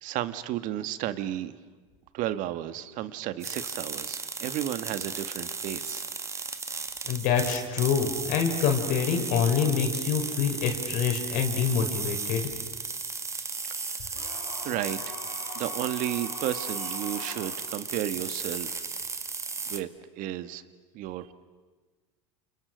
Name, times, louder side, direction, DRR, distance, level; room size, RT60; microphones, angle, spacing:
voice 1, 0.0-1.6 2.1-6.1 13.6-15.2 15.5-18.8 19.7-19.9 20.2-20.6 20.9-21.3, right 13 dB, 55° right, 12 dB, 1.7 m, -33 dB
sound 1, 3.4-19.8, right 4 dB, 20° right, 1.9 m, -35 dB
voice 2, 7.0-12.5, left 7 dB, 60° left, 4 dB, 5.6 m, -26 dB
sound 2, 14.1-17.6, left 4 dB, 85° left, 6.0 m, -43 dB
29.0 x 28.5 x 6.4 m, 1.4 s
hypercardioid pair, 95°, 16 cm